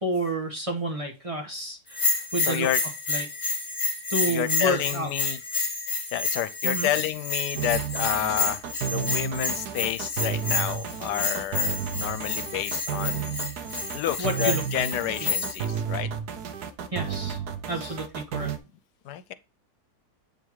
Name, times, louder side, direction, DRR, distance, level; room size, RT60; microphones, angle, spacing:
voice 1, 0.0-2.7 3.1-3.3 4.1-5.1 6.6-6.9 14.2-14.6 15.2-15.3 16.9-17.4 17.7-18.5, right 1 dB, 20° right, 1.5 m, -30 dB
Bell, 1.9-15.7, left 4 dB, 35° left, 1.5 m, -30 dB
voice 2, 2.4-2.8 4.3-5.4 6.1-13.4 13.9-16.1 17.8-17.9 19.0-19.3, left 11 dB, 90° left, 1.3 m, -30 dB
sound 1, 7.6-18.6, right 8 dB, 75° right, 1.4 m, -32 dB
8.1 x 4.0 x 4.7 m
omnidirectional pair, 1.7 m